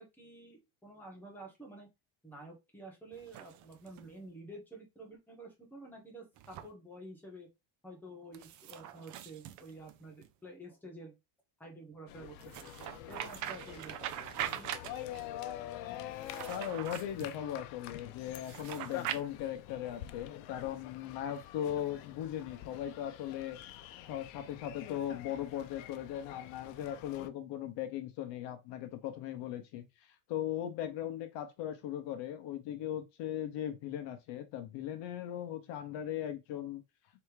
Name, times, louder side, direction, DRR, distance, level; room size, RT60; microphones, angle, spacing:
voice 1, 0.0-1.9 2.2-7.5 7.8-11.1 11.6-12.5 13.1-14.7, right 1 dB, 5° left, 1.3 m, -50 dB
sound 1, 3.1-4.1 6.4-6.7 8.3-10.3 12.4-15.3 16.1-17.4 18.4-19.2, right 11 dB, 40° right, 0.4 m, -42 dB
sound 2, 12.1-27.3, left 12 dB, 90° left, 0.7 m, -47 dB
voice 2, 16.5-23.6 24.0-29.9 30.3-36.8, left 11 dB, 60° left, 1.0 m, -38 dB
3.4 x 3.0 x 4.7 m
cardioid pair, 165°, 48 cm